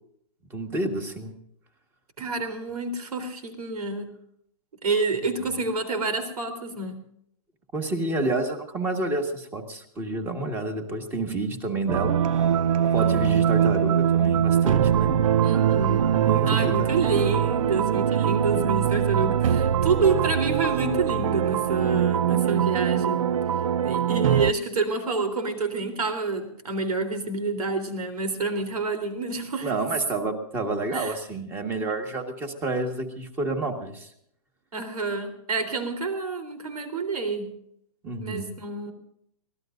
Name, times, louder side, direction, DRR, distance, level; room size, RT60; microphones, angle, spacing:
voice 1, 0.5-1.3 5.4-5.5 7.7-12.1 12.9-15.2 16.1-16.9 29.6-34.1 38.0-38.5, right 2 dB, 10° right, 6 dB, 1.6 m, -29 dB
voice 2, 2.2-4.1 4.8-7.0 13.0-13.4 15.4-16.1 16.5-23.3 23.8-29.7 30.9-31.1 34.7-37.5 38.2-38.9, right 4 dB, 85° right, 8 dB, 3.6 m, -28 dB
sound 1, 11.9-24.5, right 9 dB, 60° right, 0.5 m, -22 dB
24.0 x 18.0 x 2.6 m, 0.72 s
hypercardioid pair, 165°, 19 cm